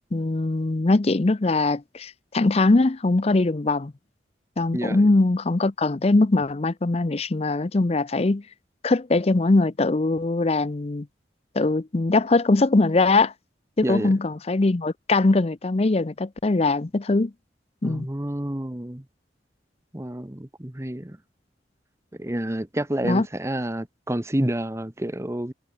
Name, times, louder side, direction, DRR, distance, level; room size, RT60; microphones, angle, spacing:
voice 1, 0.1-3.9 4.6-8.4 8.8-11.1 11.6-13.3 13.8-17.3 17.8-18.1 23.1-23.3, left 2 dB, 35° left, 0.6 m, -21 dB
voice 2, 4.7-5.1 13.8-14.1 17.8-19.0 19.9-21.2 22.2-25.5, right 1 dB, 15° right, 1.0 m, -29 dB
head